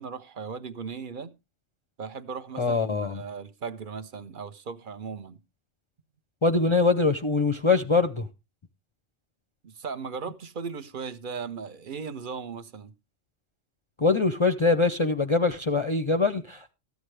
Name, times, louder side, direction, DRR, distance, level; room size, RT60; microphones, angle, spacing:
voice 1, 0.0-1.3 2.0-5.4 9.6-12.9, right 5 dB, 50° right, 0.9 m, -37 dB
voice 2, 2.6-3.2 6.4-8.3 14.0-16.7, left 3 dB, 35° left, 0.5 m, -23 dB
14.5 x 9.4 x 3.3 m
omnidirectional pair, 1.2 m